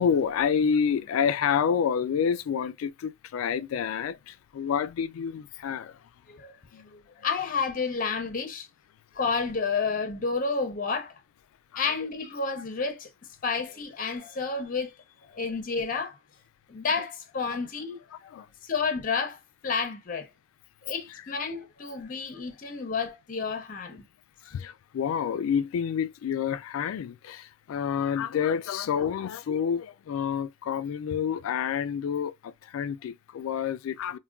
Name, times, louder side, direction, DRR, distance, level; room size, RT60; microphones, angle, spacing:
voice 1, 0.0-6.0 6.7-6.9 11.7-11.9 18.3-18.5 24.4-34.2, left 7 dB, 85° left, 0.3 m, -28 dB
voice 2, 6.9-8.7 9.1-11.2 11.8-13.1 13.4-14.9 15.3-16.2 16.7-18.3 18.6-20.3 20.8-24.0, left 4 dB, 40° left, 0.6 m, -30 dB
3.5 x 2.2 x 2.3 m
head